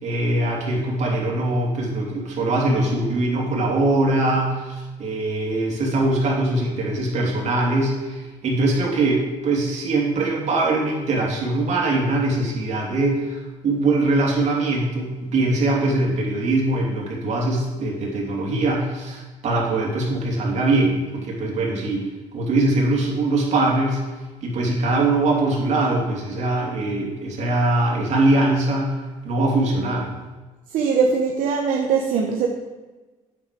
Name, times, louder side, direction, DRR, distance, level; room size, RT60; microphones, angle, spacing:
voice 1, 0.0-22.1 22.3-24.0 24.4-29.0 29.2-30.1, right 2 dB, 60° right, -2 dB, 2.8 m, -22 dB
voice 2, 30.7-32.5, right 5 dB, 80° right, 1 dB, 0.9 m, -21 dB
9.0 x 7.1 x 5.1 m, 1.2 s
cardioid pair, 120°, 13 cm